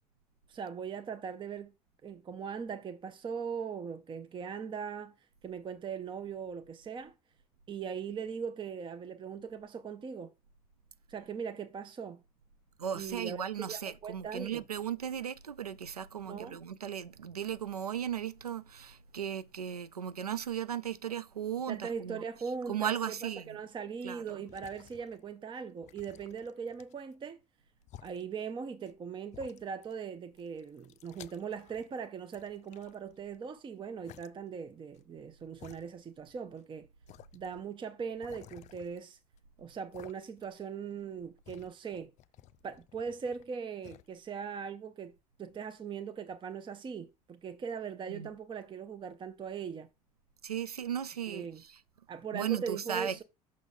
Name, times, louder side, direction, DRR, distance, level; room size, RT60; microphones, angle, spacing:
voice 1, 0.5-1.7 2.0-5.1 5.4-7.1 7.7-10.3 11.1-12.2 12.9-14.6 16.2-16.6 21.7-27.4 28.0-36.9 37.3-39.2 39.6-42.1 42.6-45.1 45.4-49.9 51.3-51.6 52.1-53.2, right 6 dB, 25° right, 0.6 m, -40 dB
voice 2, 12.8-22.3 22.7-23.6 24.0-24.5 48.1-48.3 50.4-51.8 52.3-53.2, right 9 dB, 85° right, 0.4 m, -36 dB
sound 1, 24.3-25.4 25.8-27.2 27.8-28.2 28.9-29.0 29.3-30.1 30.4-32.0 32.3-33.4 34.0-34.3 34.9-35.0 35.6-36.3 36.6-36.7 37.1-37.5 38.2-39.4 39.9-40.6 40.9-43.5 43.8-44.1, left 13 dB, 40° left, 0.4 m, -55 dB
6.0 x 6.0 x 4.0 m
figure-of-eight pair, 60°, 19 cm